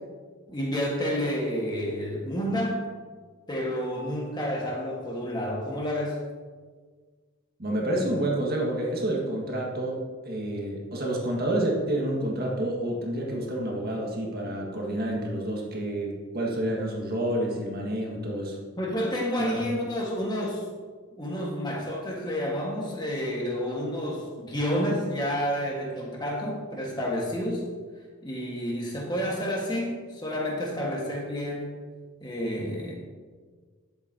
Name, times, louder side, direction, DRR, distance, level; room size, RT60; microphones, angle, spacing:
voice 1, 0.5-2.8 3.5-6.2 18.8-20.6 21.2-27.7 28.2-31.8 32.2-32.9, equal, 20° left, -2 dB, 1.5 m, -30 dB
voice 2, 7.6-18.6 19.4-19.6, right 1 dB, 45° right, -1 dB, 1.7 m, -29 dB
11.0 x 7.8 x 2.8 m, 1.5 s
head